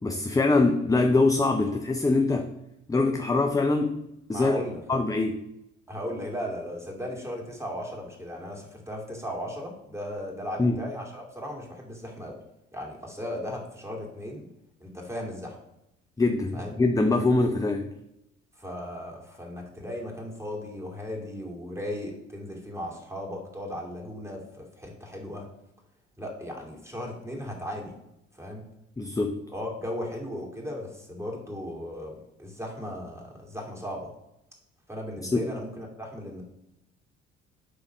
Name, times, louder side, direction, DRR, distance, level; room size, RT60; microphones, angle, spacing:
voice 1, 0.0-2.5 2.9-4.0 4.3-4.6 4.9-5.4 10.6-10.8 16.2-17.9 29.0-29.4 35.2-35.5, left 3 dB, 10° left, 5 dB, 0.6 m, -23 dB
voice 2, 4.3-4.8 5.9-12.4 12.7-14.5 14.8-15.6 16.5-16.7 18.6-25.5 26.2-28.0 28.4-28.6 29.5-34.1 34.9-36.4, equal, 10° right, -1 dB, 2.5 m, -36 dB
10.5 x 3.7 x 5.1 m, 0.85 s
figure-of-eight pair, 50°, 35 cm